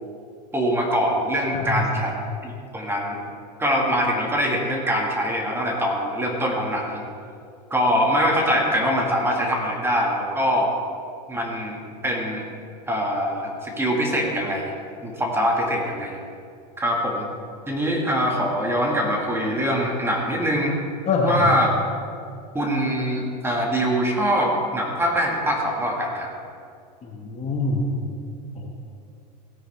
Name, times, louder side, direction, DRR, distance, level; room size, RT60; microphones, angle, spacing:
voice 1, 0.5-2.1 2.4-3.2 3.6-7.0 7.7-10.7 11.3-12.4 12.9-14.7 15.0-16.2 16.8-17.3 17.7-20.8 21.2-21.7 22.5-26.3, equal, 10° right, 0 dB, 2.0 m, -23 dB
voice 2, 1.5-1.8 21.1-21.5 27.0-27.8 28.6-28.7, left 3 dB, 30° left, 0 dB, 1.9 m, -24 dB
17.0 x 9.2 x 3.6 m, 2.3 s
hypercardioid pair, 110°, 21 cm